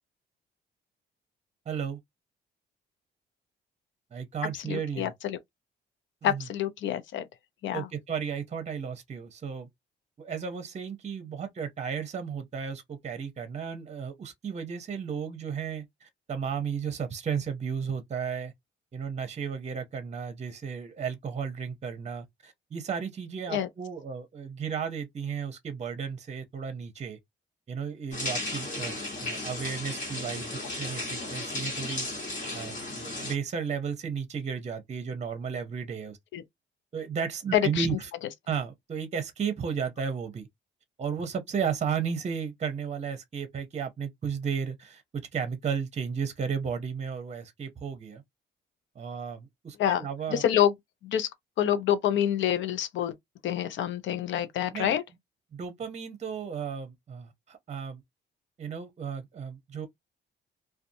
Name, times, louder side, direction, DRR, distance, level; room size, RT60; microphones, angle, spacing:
voice 1, 1.7-2.0 4.1-5.1 6.2-6.5 7.7-9.7 10.2-18.5 18.9-27.2 27.7-32.1 32.5-36.2 36.9-38.1 38.5-40.5 41.0-48.2 49.0-50.4 54.7-54.9 55.5-58.0 58.6-59.9, right 6 dB, 35° right, 0.7 m, -34 dB
voice 2, 4.6-5.4 6.2-7.2 7.6-7.9 23.5-23.7 36.3-36.4 37.5-37.9 49.8-50.7 51.0-51.3 51.6-53.1 53.4-55.0, left 10 dB, 70° left, 0.5 m, -27 dB
sound 1, 28.1-33.3, left 2 dB, 40° left, 1.4 m, -35 dB
2.5 x 2.3 x 2.6 m
cardioid pair, 90°, 20 cm